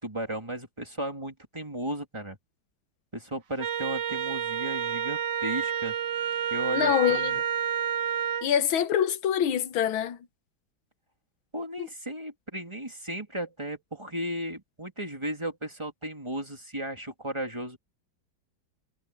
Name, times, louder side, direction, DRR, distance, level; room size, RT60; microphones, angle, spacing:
voice 1, 0.0-2.4 3.1-6.0 6.5-7.4 11.5-17.8, right 1 dB, 15° right, 2.9 m, -35 dB
Wind instrument woodwind instrument, 3.6-8.5, right 9 dB, 60° right, 1.8 m, -29 dB
voice 2, 6.7-7.4 8.4-10.2 11.8-11.9, left 10 dB, 85° left, 1.9 m, -25 dB
omnidirectional pair, 2.2 m